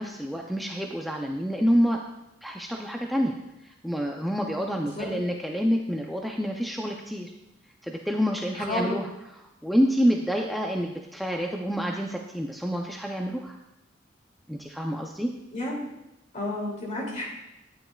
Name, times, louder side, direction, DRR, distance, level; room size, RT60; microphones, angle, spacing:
voice 1, 0.0-2.0 2.4-3.4 3.6-7.3 7.8-9.1 9.4-13.6 14.5-15.3, equal, ahead, 0 dB, 0.5 m, -27 dB
voice 2, 8.6-8.9 15.5-15.8 16.3-17.2, left 1 dB, 40° left, -2 dB, 2.6 m, -30 dB
12.0 x 9.4 x 2.3 m, 0.90 s
head